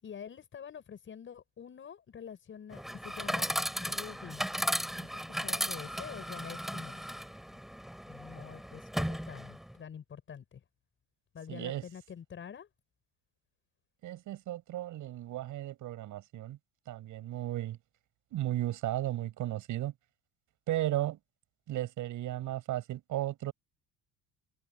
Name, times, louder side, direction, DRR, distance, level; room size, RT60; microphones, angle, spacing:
voice 1, 0.0-4.5 4.9-7.0 7.5-7.6 8.1-10.6 11.3-12.7, left 8 dB, 30° left, 7.5 m, -47 dB
Chatter / Coin (dropping), 2.7-9.7, equal, ahead, 6.0 m, -36 dB
voice 2, 11.5-11.8 14.0-16.6 16.9-17.8 18.3-19.9 20.7-21.2 21.7-23.5, right 14 dB, 50° right, 7.5 m, -35 dB
cardioid pair, 150°, 38 cm